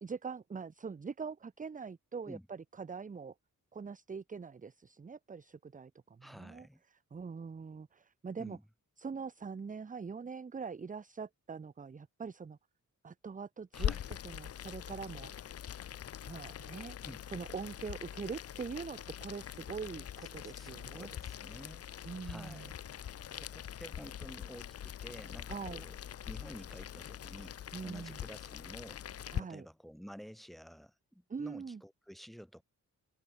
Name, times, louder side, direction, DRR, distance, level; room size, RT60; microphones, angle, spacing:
voice 1, 0.0-3.3 3.7-6.7 7.1-8.6 9.0-12.6 13.0-15.3 16.3-17.0 17.3-21.1 22.0-22.7 25.5-25.8 27.7-28.2 29.3-29.7 31.3-31.8, right 5 dB, 25° right, 0.7 m, -43 dB
voice 2, 6.2-6.8 8.4-8.6 13.7-14.1 17.0-17.3 20.2-21.9 22.2-22.8 23.3-26.0 26.2-29.0 29.4-32.6, equal, ahead, 5.1 m, -51 dB
Boiling, 13.7-29.4, left 10 dB, 45° left, 0.5 m, -43 dB
wide cardioid pair, 170°, 33 cm